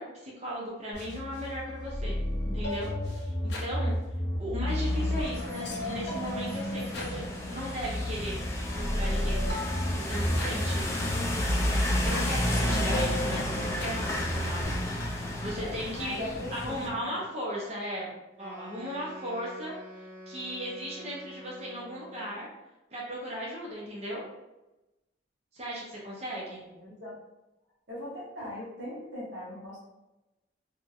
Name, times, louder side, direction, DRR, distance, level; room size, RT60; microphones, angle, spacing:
voice 1, 0.0-2.2 2.4-4.0 4.4-8.4 8.7-9.6 10.0-10.9 11.9-15.2 15.4-16.2 16.5-22.5 22.9-24.2 25.5-26.6, equal, 35° right, -4 dB, 0.6 m, -37 dB
sound 1, 0.9-14.6, left 1 dB, 65° left, 0.6 m, -32 dB
sound 2, 4.7-16.9, left 1 dB, 15° left, 0.3 m, -32 dB
voice 2, 5.8-6.1 15.3-17.2 26.5-27.2 27.9-29.8, left 1 dB, 70° right, -7 dB, 0.9 m, -41 dB
Wind instrument woodwind instrument, 18.3-22.4, left 1 dB, 15° right, 1.5 m, -47 dB
2.8 x 2.6 x 2.4 m, 0.99 s
head